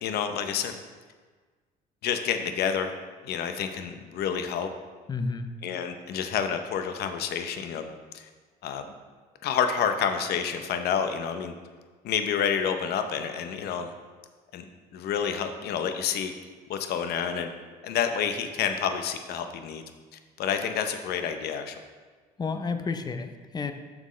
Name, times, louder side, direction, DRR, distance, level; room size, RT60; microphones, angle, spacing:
voice 1, 0.0-0.8 2.0-2.9 3.2-4.7 5.6-8.3 8.6-8.9 9.4-11.5 12.0-13.9 14.5-14.6 14.9-16.3 16.7-17.5 17.8-19.8 20.4-21.8, left 7 dB, 70° left, 7 dB, 0.7 m, -29 dB
voice 2, 5.1-5.5 22.4-23.7, left 4 dB, 25° left, 8 dB, 0.5 m, -31 dB
7.5 x 6.1 x 3.2 m, 1.4 s
cardioid pair, 110°, 17 cm